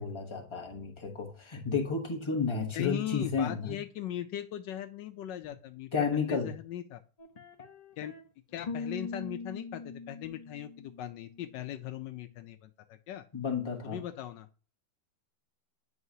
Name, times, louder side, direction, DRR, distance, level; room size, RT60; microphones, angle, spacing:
voice 1, 0.0-3.8 5.9-6.5 13.3-14.0, left 5 dB, 20° left, 0.8 m, -32 dB
voice 2, 2.7-7.0 8.0-8.1 8.5-13.2 13.8-14.5, left 11 dB, 80° left, 1.2 m, -39 dB
sound 1, 7.2-8.2 8.6-11.5, left 4 dB, 45° left, 0.5 m, -42 dB
9.5 x 5.6 x 2.7 m
omnidirectional pair, 2.0 m